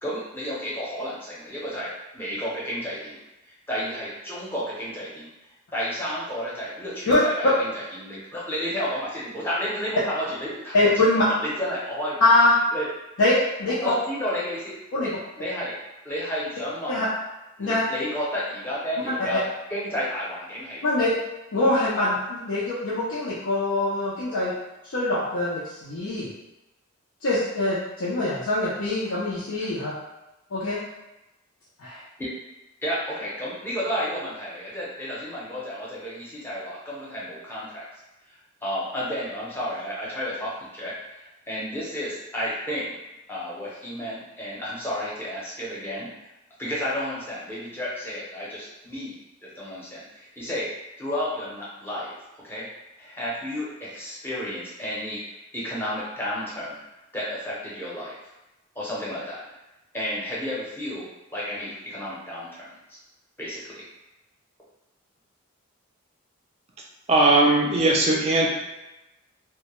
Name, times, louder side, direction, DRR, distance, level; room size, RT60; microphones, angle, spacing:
voice 1, 0.0-3.2 3.4-5.3 5.7-11.1 11.4-12.2 12.7-12.9 13.7-15.1 15.4-15.8 16.0-17.1 17.6-19.4 19.7-21.1 29.6-29.7 32.2-32.3 32.8-37.8 38.3-43.0 43.3-46.1 46.6-50.7 51.0-52.7 53.0-56.8 57.1-58.2 58.8-59.4 59.9-63.0 63.4-63.9, equal, 10° left, -7 dB, 0.6 m, -32 dB
voice 2, 10.7-11.2 12.2-12.5 13.2-13.9 14.9-15.1 16.9-17.1 17.6-17.8 19.1-19.3 20.8-21.1 21.5-24.5 24.8-26.3 27.2-29.9 30.5-30.8 31.8-32.0, left 2 dB, 90° left, -9 dB, 0.5 m, -23 dB
voice 3, 67.1-68.5, right 2 dB, 30° right, -2 dB, 0.4 m, -19 dB
2.2 x 2.1 x 2.9 m, 0.99 s
head